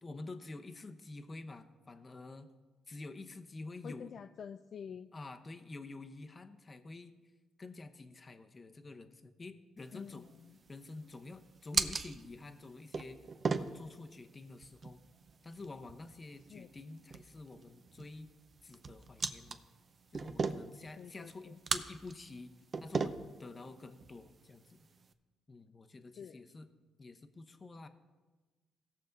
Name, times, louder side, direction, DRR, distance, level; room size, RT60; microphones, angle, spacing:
voice 1, 0.0-2.5 2.9-4.1 5.1-7.2 7.6-10.3 10.7-15.0 15.4-18.3 18.6-19.6 20.1-22.5 22.8-24.9 25.5-26.7 27.0-27.9, left 3 dB, 30° left, 9 dB, 0.8 m, -49 dB
voice 2, 3.8-5.1 9.9-10.6 16.5-16.7 21.0-21.6 26.2-26.4, left 7 dB, 55° left, 9 dB, 0.3 m, -48 dB
Unloading Magazine, 9.8-25.1, right 4 dB, 40° right, 0.6 m, -40 dB
17.0 x 6.5 x 3.9 m, 1.3 s
cardioid pair, 90°, 0 cm